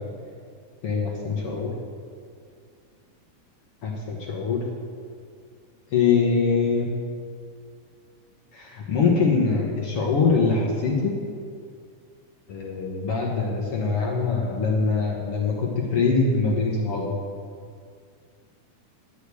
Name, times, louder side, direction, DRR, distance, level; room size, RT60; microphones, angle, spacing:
voice 1, 0.8-1.7 3.8-4.6 5.9-6.9 8.5-11.1 12.5-17.1, left 4 dB, 55° left, -2 dB, 1.8 m, -23 dB
10.0 x 6.6 x 8.4 m, 2.2 s
omnidirectional pair, 3.7 m